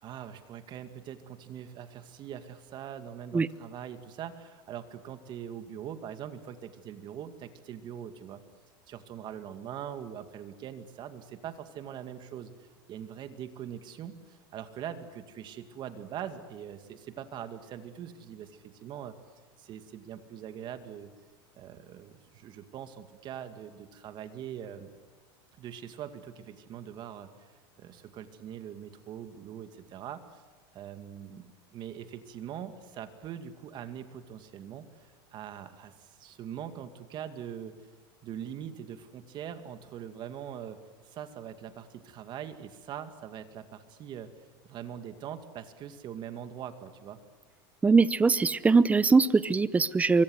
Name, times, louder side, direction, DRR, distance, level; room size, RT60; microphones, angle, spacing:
voice 1, 0.0-8.4 8.9-19.1 19.6-21.1 21.5-24.9 25.6-30.4 30.7-37.7 38.2-44.3 44.6-47.2, right 9 dB, 40° right, 8 dB, 2.3 m, -42 dB
voice 2, 47.8-50.2, right 4 dB, 10° right, 17 dB, 0.8 m, -22 dB
25.5 x 23.5 x 8.0 m, 1.4 s
supercardioid pair, 130°, 12 cm